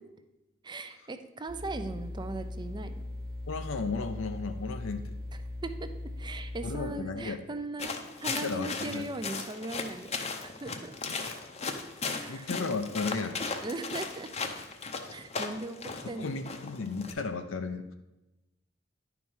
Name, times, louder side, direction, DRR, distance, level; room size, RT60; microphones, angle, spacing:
voice 1, 0.6-3.1 5.6-5.9 6.2-7.9 8.2-10.9 12.2-12.5 13.6-14.3 15.1-16.4, right 2 dB, 25° right, 9 dB, 0.5 m, -38 dB
sound 1, 1.5-6.9, left 1 dB, 50° right, 0.9 m, -39 dB
voice 2, 3.5-5.1 6.6-7.4 8.3-9.0 12.3-13.4 16.0-17.9, left 4 dB, 75° left, 6 dB, 0.7 m, -34 dB
sound 2, 7.8-17.1, left 4 dB, 35° left, 0.7 m, -37 dB
10.5 x 4.7 x 5.4 m, 0.99 s
head